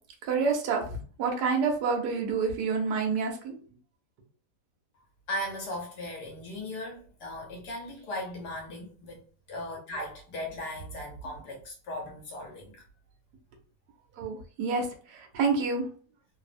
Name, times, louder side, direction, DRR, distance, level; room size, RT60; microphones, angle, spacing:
voice 1, 0.2-3.6 14.2-15.9, right 5 dB, 80° right, 1.3 m, -28 dB
voice 2, 5.3-12.8, left 1 dB, 75° left, 1.2 m, -38 dB
3.1 x 2.0 x 2.4 m
omnidirectional pair, 1.8 m